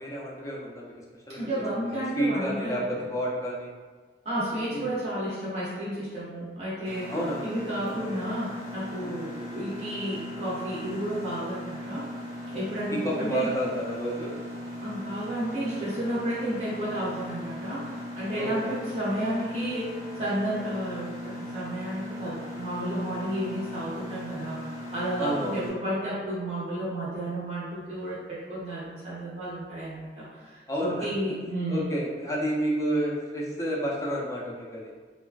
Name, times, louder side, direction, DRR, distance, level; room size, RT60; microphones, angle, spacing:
voice 1, 0.0-3.7 4.7-4.9 7.1-7.4 7.9-8.2 9.0-9.3 12.9-14.4 18.4-18.7 25.2-25.6 30.7-31.1 31.7-34.9, equal, 15° left, -4 dB, 0.4 m, -31 dB
voice 2, 1.3-2.9 4.2-7.1 7.4-12.1 12.5-13.5 14.8-24.6 24.9-31.8, right 1 dB, 35° right, -9 dB, 0.6 m, -32 dB
Mechanisms, 6.8-25.7, left 1 dB, 75° right, 1.1 m, -38 dB
3.0 x 2.3 x 2.4 m, 1.4 s
head